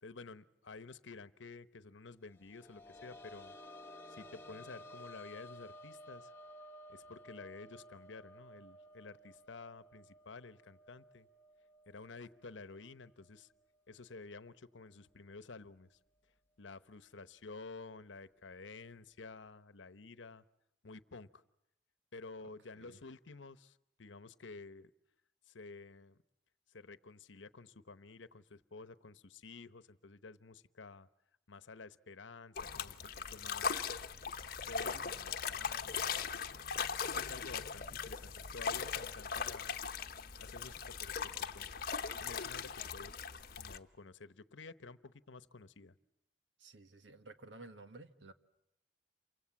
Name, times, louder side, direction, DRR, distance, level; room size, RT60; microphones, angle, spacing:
voice 1, 0.0-3.6 4.1-6.3 6.9-11.3 11.9-13.5 13.9-16.0 16.6-20.4 20.8-21.4 22.1-24.9 25.5-26.2 26.7-31.1 31.5-34.0 34.5-36.3 36.8-39.8 40.4-41.7 42.2-43.3 43.5-46.0, left 3 dB, 85° left, 1.0 m, -51 dB
sound 1, 2.3-13.8 14.1-14.2 15.8-15.9, left 1 dB, 10° left, 1.0 m, -55 dB
sound 2, 32.6-43.8, left 6 dB, 50° left, 1.0 m, -39 dB
voice 2, 46.6-48.3, right 2 dB, 80° right, 1.6 m, -53 dB
28.5 x 25.0 x 7.2 m
head